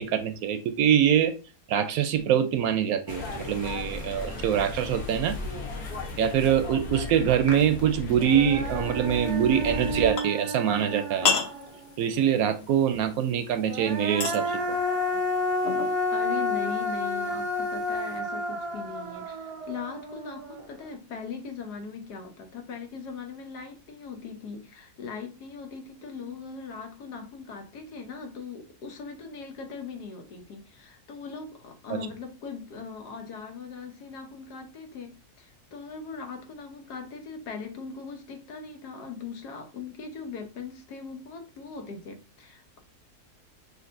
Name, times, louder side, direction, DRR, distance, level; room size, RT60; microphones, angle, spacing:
voice 1, 0.0-1.3 1.7-5.4 6.2-11.3 12.0-14.8 31.9-32.0, right 9 dB, 70° right, 1.0 m, -24 dB
sound 1, 3.1-10.1, left 3 dB, 70° left, 1.6 m, -36 dB
Human voice, 7.8-7.9 8.2-11.9 13.6-20.8, left 1 dB, 45° right, 0.4 m, -30 dB
sound 2, 8.7-18.2, left 5 dB, 55° left, 0.8 m, -36 dB
voice 2, 16.1-42.8, left 5 dB, 90° left, 1.5 m, -40 dB
6.4 x 2.6 x 2.5 m
omnidirectional pair, 1.7 m